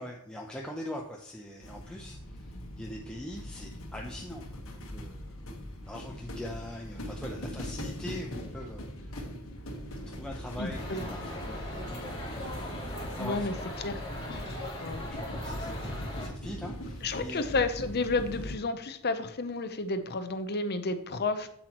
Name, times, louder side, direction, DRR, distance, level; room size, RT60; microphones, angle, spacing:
voice 1, 0.0-5.5 5.8-9.2 10.1-12.6 13.2-13.5 14.9-17.5, left 1 dB, 5° left, -2 dB, 0.7 m, -42 dB
sound 1, 1.6-18.6, left 1 dB, 65° left, 1.4 m, -41 dB
voice 2, 10.6-11.0 13.2-13.5 13.8-14.0 14.3-14.5 14.8-15.0 17.0-21.5, left 3 dB, 45° left, 9 dB, 0.8 m, -31 dB
sound 2, 10.7-16.3, left 1 dB, 25° left, 3.0 m, -40 dB
8.1 x 7.8 x 3.0 m, 0.69 s
head